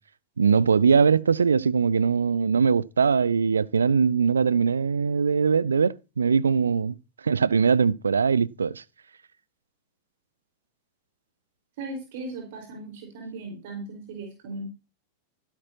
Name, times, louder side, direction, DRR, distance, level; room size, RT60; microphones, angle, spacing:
voice 1, 0.4-6.9 7.2-8.8, right 5 dB, 75° right, 0.5 m, -21 dB
voice 2, 11.8-14.7, right 2 dB, 50° right, 5.0 m, -37 dB
16.0 x 10.5 x 2.9 m
figure-of-eight pair, 90°, 0 cm